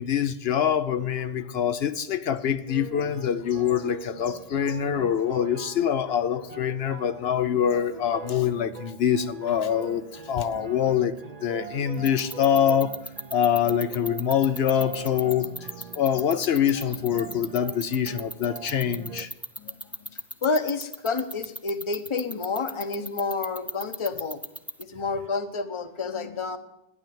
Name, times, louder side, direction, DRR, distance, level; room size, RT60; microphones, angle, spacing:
voice 1, 0.0-11.1 11.4-12.9 13.3-15.5 15.9-19.3, left 9 dB, 75° left, 0.9 m, -25 dB
sound 1, 2.7-19.3, right 5 dB, 45° right, 0.7 m, -42 dB
sound 2, 11.9-24.8, equal, ahead, 0.5 m, -33 dB
voice 2, 20.4-24.4 24.8-26.6, left 4 dB, 30° left, 0.9 m, -29 dB
12.0 x 10.5 x 7.7 m
omnidirectional pair, 1.0 m